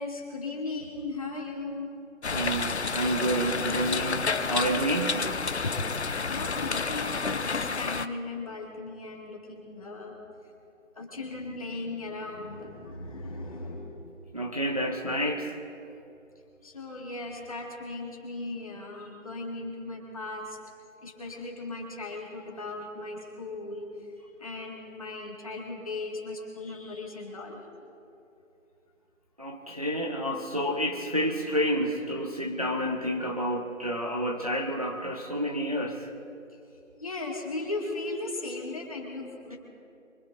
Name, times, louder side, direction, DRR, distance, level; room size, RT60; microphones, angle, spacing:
voice 1, 0.0-1.9 5.6-5.8 6.3-10.2 11.0-14.1 16.6-20.6 21.0-23.9 24.4-27.6 37.0-39.6, left 2 dB, 25° left, -1 dB, 2.0 m, -37 dB
sound 1, 2.2-8.1, left 5 dB, 60° left, 0.6 m, -30 dB
voice 2, 2.3-5.3 14.3-15.5 29.4-36.1, equal, 30° right, 2 dB, 0.7 m, -29 dB
24.0 x 22.0 x 2.7 m, 2.7 s
figure-of-eight pair, 165°, 39 cm